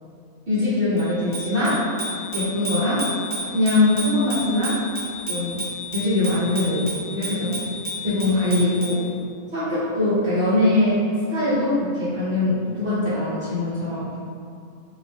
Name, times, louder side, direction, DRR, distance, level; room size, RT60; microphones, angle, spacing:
voice 1, 0.5-1.8 2.3-3.1 3.5-4.8 5.3-5.6 5.9-7.6 8.0-9.0 9.5-11.0 11.3-14.1, left 2 dB, 50° right, -13 dB, 0.8 m, -22 dB
Bicycle bell, 1.0-9.1, equal, 15° left, 0.8 m, -32 dB
2.6 x 2.0 x 3.3 m, 2.4 s
omnidirectional pair, 1.5 m